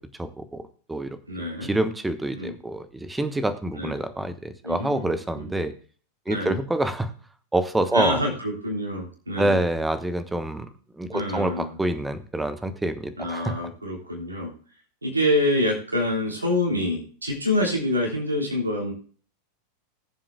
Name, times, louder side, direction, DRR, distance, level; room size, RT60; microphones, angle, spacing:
voice 1, 0.2-0.6 0.9-1.2 1.6-5.7 6.3-7.1 7.5-8.2 9.4-10.7 11.0-13.6, right 1 dB, 5° right, 11 dB, 1.2 m, -26 dB
voice 2, 1.3-1.7 2.3-2.5 3.7-3.9 4.6-5.5 6.3-6.6 7.9-9.6 11.1-11.8 13.2-14.5 15.0-18.9, left 1 dB, 80° right, -1 dB, 3.4 m, -26 dB
19.5 x 7.5 x 2.3 m, 0.43 s
figure-of-eight pair, 90°, 0 cm